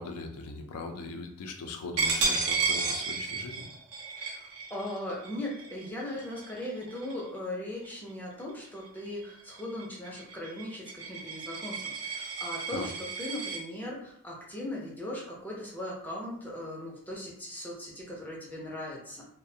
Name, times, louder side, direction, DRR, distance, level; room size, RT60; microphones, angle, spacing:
voice 1, 0.0-3.6 12.7-12.9, left 3 dB, 85° left, 4 dB, 0.4 m, -39 dB
Coin (dropping), 2.0-7.4 7.8-8.1 8.5-13.6, right 4 dB, 85° right, 0.5 m, -33 dB
voice 2, 4.2-19.2, left 1 dB, 10° left, -4 dB, 0.4 m, -39 dB
2.4 x 2.0 x 2.6 m, 0.71 s
head